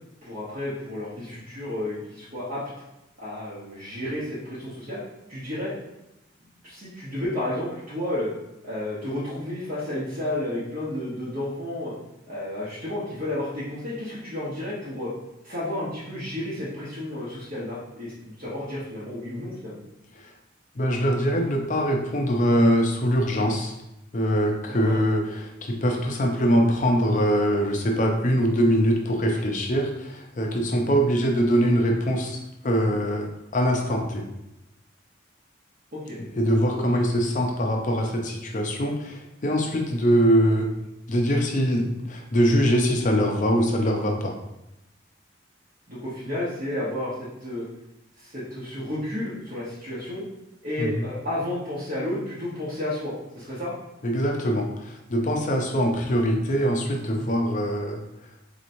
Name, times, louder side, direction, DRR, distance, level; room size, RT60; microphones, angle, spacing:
voice 1, 0.2-2.6 3.2-5.0 5.3-5.8 6.6-8.3 8.6-11.9 12.3-15.1 15.4-19.8 24.7-25.0 35.9-36.2 36.7-37.1 45.9-47.6 48.2-50.2 50.6-53.7, left 1 dB, 45° right, -10 dB, 0.9 m, -32 dB
voice 2, 20.8-23.7 24.1-34.2 36.3-40.7 41.1-44.3 50.8-50.9 54.0-58.0, equal, 40° left, 1 dB, 0.5 m, -23 dB
4.2 x 2.9 x 2.6 m, 0.91 s
head